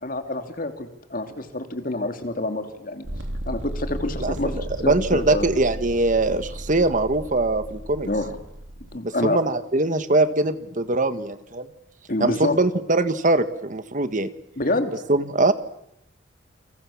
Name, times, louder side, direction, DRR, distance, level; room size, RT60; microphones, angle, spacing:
voice 1, 0.0-3.1 3.5-5.5 8.0-8.4 8.9-9.4 12.1-12.6 14.6-14.9, left 2 dB, 45° left, 7 dB, 2.9 m, -27 dB
sound 1, 3.0-9.0, right 1 dB, 70° right, 3.2 m, -34 dB
voice 2, 4.2-8.1 9.0-11.7 12.2-14.3 15.1-15.5, right 2 dB, 40° right, 11 dB, 1.5 m, -22 dB
29.0 x 25.5 x 7.2 m, 0.77 s
head